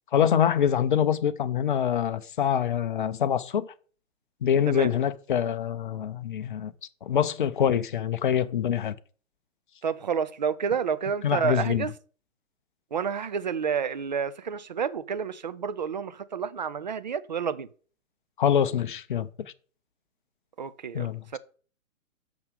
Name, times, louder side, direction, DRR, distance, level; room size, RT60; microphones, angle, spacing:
voice 1, 0.1-3.7 4.4-6.7 7.0-8.9 11.2-11.8 18.4-19.3 20.9-21.4, left 9 dB, 40° left, 0.6 m, -25 dB
voice 2, 9.8-11.9 12.9-17.7 20.6-21.4, right 6 dB, 35° right, 0.4 m, -30 dB
6.1 x 5.4 x 6.6 m
figure-of-eight pair, 125°, 40 cm